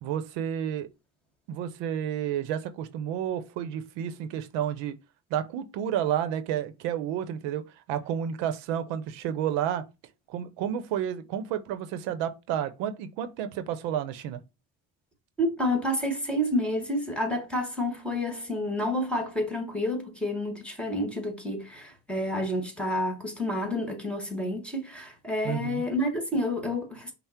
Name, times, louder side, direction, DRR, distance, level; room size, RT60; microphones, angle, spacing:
voice 1, 0.0-0.9 1.5-4.9 5.3-7.6 7.9-9.8 10.3-14.4 25.4-25.8, right 9 dB, 90° right, 0.7 m, -31 dB
voice 2, 15.4-27.1, left 1 dB, 5° left, 1.6 m, -29 dB
5.6 x 2.0 x 4.3 m
supercardioid pair, 75°, 43 cm